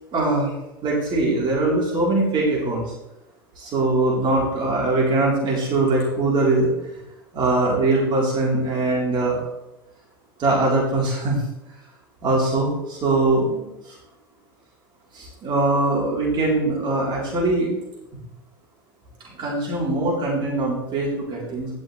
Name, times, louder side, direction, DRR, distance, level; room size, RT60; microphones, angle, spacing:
voice 1, 0.1-0.5 0.8-2.9 3.6-7.0 7.3-9.4 10.4-11.4 12.2-14.0 15.1-17.7 19.2-21.7, right 2 dB, 45° right, -4 dB, 4.2 m, -22 dB
17.0 x 6.4 x 3.4 m, 0.90 s
hypercardioid pair, 85°, 11 cm